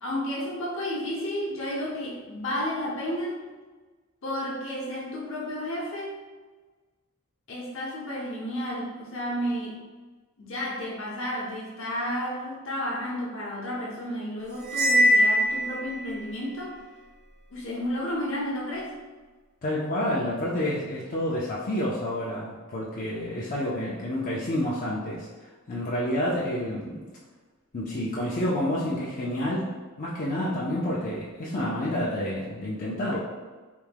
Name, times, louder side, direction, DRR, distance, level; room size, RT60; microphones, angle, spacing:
voice 1, 0.0-3.4 4.2-6.2 7.5-9.8 10.4-16.8 17.5-19.0, equal, 65° left, -4 dB, 0.8 m, -32 dB
Cymbal, 14.7-16.1, equal, 45° right, 0.4 m, -21 dB
voice 2, 19.6-27.1 27.7-29.7 30.0-33.2, left 1 dB, 40° left, -7 dB, 0.5 m, -29 dB
3.3 x 2.1 x 3.3 m, 1.3 s
head